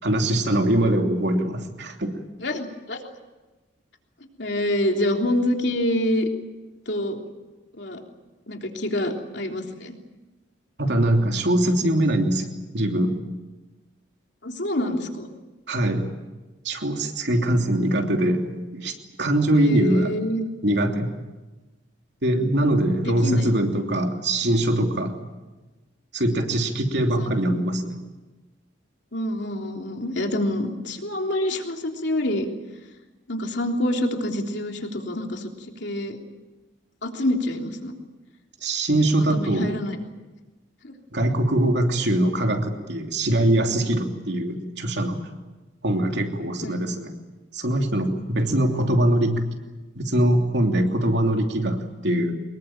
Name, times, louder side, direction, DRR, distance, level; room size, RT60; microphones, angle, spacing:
voice 1, 0.0-2.1 10.8-12.5 12.7-13.2 15.7-16.1 16.6-20.1 20.6-21.1 22.2-25.2 26.1-27.9 38.6-39.7 41.1-45.2 45.8-47.1 47.5-49.4 49.9-52.3, right 1 dB, 60° right, 3 dB, 3.0 m, -22 dB
voice 2, 2.4-3.0 4.4-6.3 6.8-7.2 7.7-8.0 8.5-9.9 14.4-15.3 19.5-20.4 23.0-23.5 27.2-27.3 29.1-32.5 33.3-35.5 35.8-36.2 37.0-37.9 39.3-40.0 40.8-40.9 46.6-46.8, left 1 dB, 60° left, 2 dB, 3.4 m, -26 dB
24.5 x 21.5 x 9.1 m, 1.2 s
head